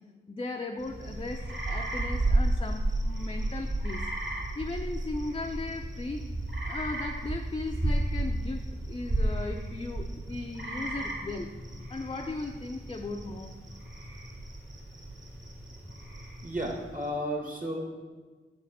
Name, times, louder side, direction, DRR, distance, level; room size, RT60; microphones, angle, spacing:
voice 1, 0.3-4.0 4.6-6.3 6.6-11.5 11.9-13.5, left 2 dB, 25° left, 3 dB, 0.4 m, -37 dB
sound 1, 0.8-17.0, right 1 dB, 60° right, 1.8 m, -33 dB
voice 2, 16.4-17.8, equal, 40° right, 1 dB, 1.6 m, -33 dB
8.7 x 4.2 x 4.1 m, 1.4 s
cardioid pair, 45°, 21 cm